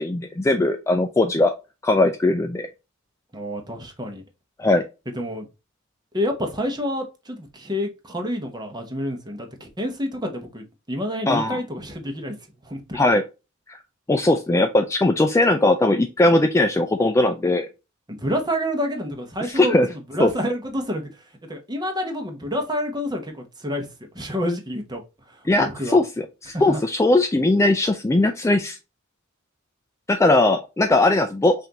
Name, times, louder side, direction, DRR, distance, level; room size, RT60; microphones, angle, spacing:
voice 1, 0.0-1.5 1.8-2.7 4.6-4.8 11.3-11.6 12.9-13.2 13.7-13.8 14.1-17.7 19.5-19.9 20.2-20.3 25.5-28.8 30.1-31.5, left 2 dB, 15° left, 0.3 m, -19 dB
voice 2, 3.3-4.2 5.1-5.5 6.1-12.4 12.6-13.0 18.1-21.2 21.5-23.9 24.1-25.0 25.3-26.0 26.5-26.8, equal, 20° right, 0.9 m, -28 dB
5.7 x 2.6 x 2.9 m
head